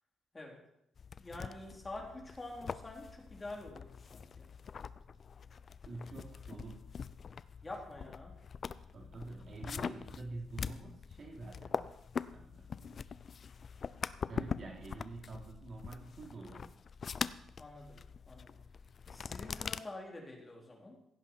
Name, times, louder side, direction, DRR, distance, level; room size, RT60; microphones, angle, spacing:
sound 1, 1.0-19.8, left 6 dB, 45° left, 0.5 m, -43 dB
voice 1, 1.2-4.5 7.6-8.3 17.6-18.0 18.3-18.5 19.1-21.0, left 2 dB, 20° left, 0 dB, 3.5 m, -47 dB
voice 2, 5.8-6.8 8.9-11.9 12.2-13.0 14.2-16.7, right 3 dB, 50° right, 0 dB, 3.1 m, -47 dB
16.0 x 11.0 x 4.5 m, 0.82 s
cardioid pair, 90°, 0 cm